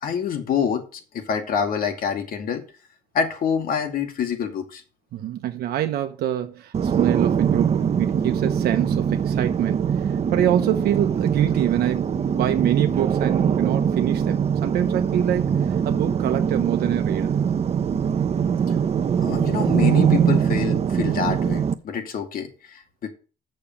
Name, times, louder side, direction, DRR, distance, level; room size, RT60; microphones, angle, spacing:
voice 1, 0.0-2.6 3.1-4.8 19.2-23.1, left 7 dB, 55° left, 2.3 m, -26 dB
voice 2, 5.1-17.3, right 11 dB, 70° right, 1.0 m, -26 dB
sound 1, 6.7-21.7, right 7 dB, 40° right, 0.8 m, -22 dB
7.0 x 6.7 x 7.1 m
cardioid pair, 110°, 17 cm